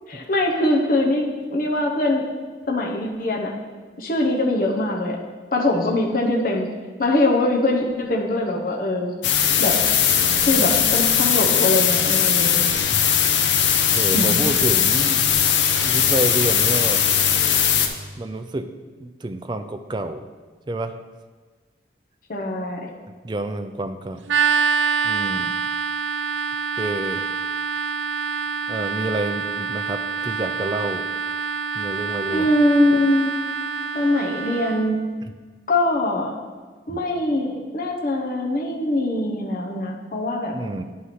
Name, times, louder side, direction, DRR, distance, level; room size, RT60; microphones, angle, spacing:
voice 1, 0.1-2.2 2.7-3.5 4.0-5.2 5.5-6.7 7.0-9.1 9.6-9.7 10.4-12.6 14.1-14.4 22.3-22.9 32.3-33.3 33.9-35.0 35.7-36.3 36.9-40.5, left 1 dB, 50° left, -1 dB, 0.9 m, -22 dB
sound 1, 9.2-17.9, left 8 dB, 80° left, 0.7 m, -19 dB
voice 2, 10.2-10.8 13.9-15.2 15.7-17.1 18.2-18.7 19.0-20.3 20.7-20.9 23.2-24.2 25.0-25.5 26.8-27.2 28.7-31.0 31.7-32.5 36.9-37.0 40.5-40.8, right 2 dB, 25° right, 8 dB, 0.4 m, -28 dB
sound 2, 24.3-34.9, right 6 dB, 85° right, 0.4 m, -26 dB
9.6 x 4.7 x 4.2 m, 1.4 s
head